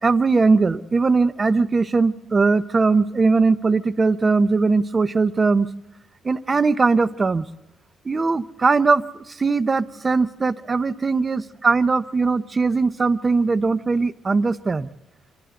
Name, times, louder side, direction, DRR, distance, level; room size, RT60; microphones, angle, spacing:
voice 1, 0.0-5.7 6.2-7.5 8.0-14.9, right 4 dB, 30° right, 13 dB, 1.0 m, -20 dB
27.5 x 25.0 x 3.9 m, 1.0 s
cardioid pair, 90°, 0 cm